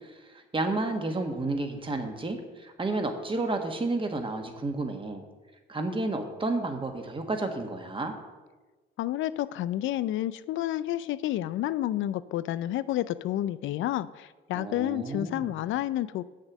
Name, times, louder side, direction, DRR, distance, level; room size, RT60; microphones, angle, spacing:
voice 1, 0.3-5.2 5.7-8.1 14.5-15.5, right 2 dB, 25° right, 4 dB, 1.5 m, -31 dB
voice 2, 9.0-16.2, left 13 dB, 80° left, 15 dB, 0.4 m, -30 dB
7.3 x 6.5 x 7.2 m, 1.3 s
cardioid pair, 90°, 20 cm